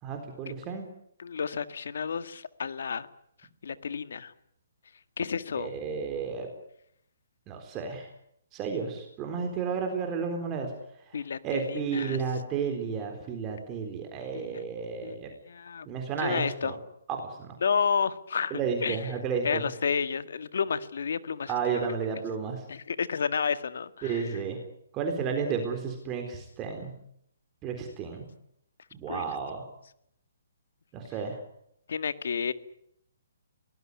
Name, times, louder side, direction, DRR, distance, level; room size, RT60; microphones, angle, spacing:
voice 1, 0.0-0.8 5.6-6.5 7.5-8.1 8.5-10.7 11.1-15.3 15.9-16.8 17.1-17.6 18.5-19.7 21.5-22.6 24.0-24.6 24.9-26.9 27.6-28.2 28.9-29.7 30.9-31.4, right 6 dB, 20° right, 4 dB, 3.9 m, -32 dB
voice 2, 1.2-3.1 3.6-4.3 5.2-5.7 11.1-12.2 14.3-14.6 15.0-15.1 15.5-15.9 16.2-16.7 17.6-19.0 19.4-21.9 22.7-24.3 29.1-29.2 31.9-32.5, left 6 dB, 70° left, 12 dB, 1.7 m, -31 dB
24.0 x 19.0 x 9.8 m, 0.72 s
hypercardioid pair, 150°, 0 cm